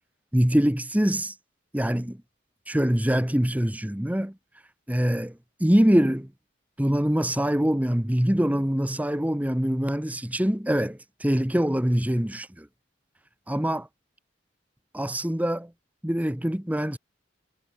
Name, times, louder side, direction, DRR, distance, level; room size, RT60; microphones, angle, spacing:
voice 1, 0.3-1.3 1.7-2.2 2.7-4.3 4.9-6.3 6.8-12.7 13.5-13.9 14.9-15.7 16.0-17.0, equal, 10° right, 1.0 m, -24 dB
head